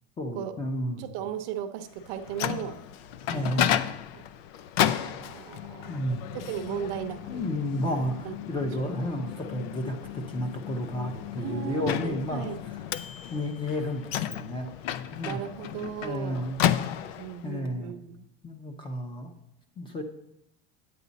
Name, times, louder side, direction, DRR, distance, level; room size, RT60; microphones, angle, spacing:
voice 1, 0.2-1.1 3.3-3.8 5.9-6.3 7.3-12.5 13.3-14.7 15.1-15.4 16.0-16.6 17.4-18.0 18.4-19.3 19.8-20.0, left 1 dB, 15° left, 6 dB, 0.7 m, -32 dB
voice 2, 1.0-2.8 3.3-3.8 4.1-4.2 5.0-6.1 6.3-7.5 8.2-8.4 8.8-8.9 11.4-12.6 15.2-16.5 17.2-18.3, right 10 dB, 50° right, 7 dB, 0.7 m, -36 dB
Microwave oven, 2.0-17.5, left 11 dB, 70° left, 0.5 m, -33 dB
9.5 x 8.5 x 4.0 m, 0.79 s
supercardioid pair, 165°, 31 cm